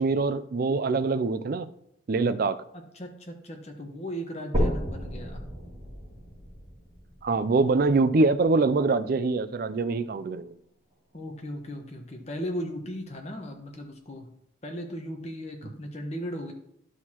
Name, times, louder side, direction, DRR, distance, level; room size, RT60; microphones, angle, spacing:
voice 1, 0.0-1.7 2.1-2.6 7.2-10.5, right 3 dB, 50° right, 12 dB, 0.4 m, -24 dB
voice 2, 2.7-5.4 11.1-14.3 14.6-16.5, equal, 35° left, 3 dB, 1.1 m, -37 dB
sound 1, 4.5-8.5 9.1-9.2 9.8-9.9 10.2-10.3 11.1-11.2, equal, 30° right, 2.8 m, -32 dB
11.0 x 6.3 x 2.9 m, 0.74 s
head